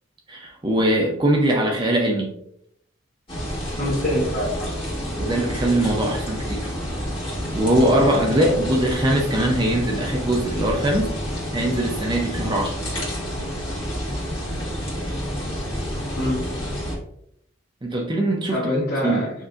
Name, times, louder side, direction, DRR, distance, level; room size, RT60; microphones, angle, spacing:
voice 1, 0.3-2.3 5.2-6.6 7.5-11.2 11.5-12.8 17.8-19.2, right 1 dB, 20° right, 0 dB, 0.5 m, -21 dB
sound 1, 3.3-17.0, equal, 25° left, 1.5 m, -29 dB
voice 2, 3.8-4.8 8.5-8.6 16.2-16.7 18.5-19.3, left 1 dB, 50° left, -6 dB, 1.0 m, -25 dB
6.2 x 2.6 x 2.5 m, 0.73 s
head